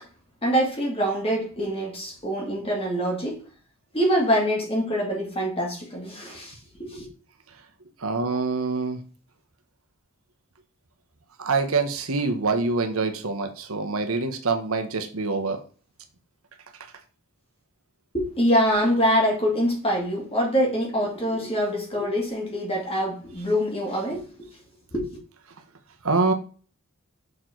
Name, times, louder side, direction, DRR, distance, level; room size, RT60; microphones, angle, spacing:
voice 1, 0.4-3.4 3.9-7.1 18.1-24.3 24.9-25.0, equal, 25° left, 2.5 m, -24 dB
voice 2, 8.0-9.0 11.4-15.6 26.0-26.3, right 3 dB, 80° right, 1.1 m, -25 dB
6.4 x 4.4 x 4.5 m
head